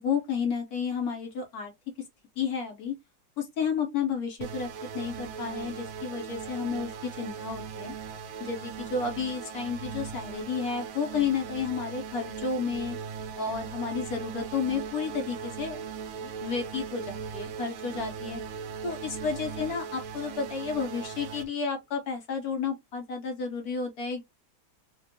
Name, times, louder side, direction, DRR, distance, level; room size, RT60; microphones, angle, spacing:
voice 1, 0.0-1.7 2.4-2.9 3.4-4.7 4.9-7.9 8.4-13.0 13.4-15.8 16.2-18.4 18.8-24.2, left 6 dB, 70° left, 0.9 m, -31 dB
sound 1, 4.4-21.4, right 6 dB, 85° right, 1.4 m, -39 dB
3.3 x 2.2 x 2.6 m
omnidirectional pair, 2.2 m